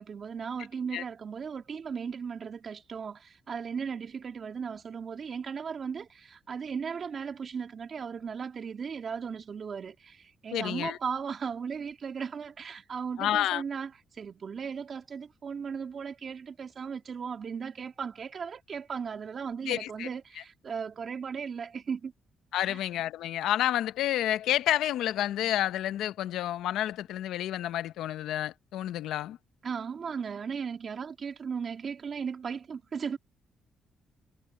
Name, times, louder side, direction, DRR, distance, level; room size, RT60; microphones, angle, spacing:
voice 1, 0.0-22.1 22.6-22.8 29.6-33.2, right 6 dB, 50° right, 2.4 m, -36 dB
voice 2, 10.5-11.0 13.2-13.6 19.7-20.1 22.5-29.4, left 12 dB, 85° left, 0.8 m, -29 dB
cardioid pair, 90°, 0 cm